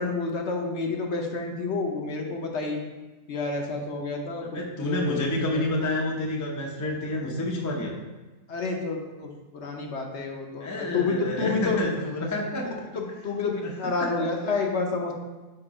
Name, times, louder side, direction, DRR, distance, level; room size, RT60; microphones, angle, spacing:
voice 1, 0.0-2.8 3.3-4.5 4.8-5.9 8.5-11.8 12.9-15.1, left 3 dB, 60° left, 1 dB, 1.0 m, -29 dB
voice 2, 4.5-7.9 10.6-12.7 14.0-14.3, left 1 dB, 20° left, 0 dB, 0.5 m, -29 dB
5.0 x 4.4 x 4.9 m, 1.2 s
omnidirectional pair, 1.5 m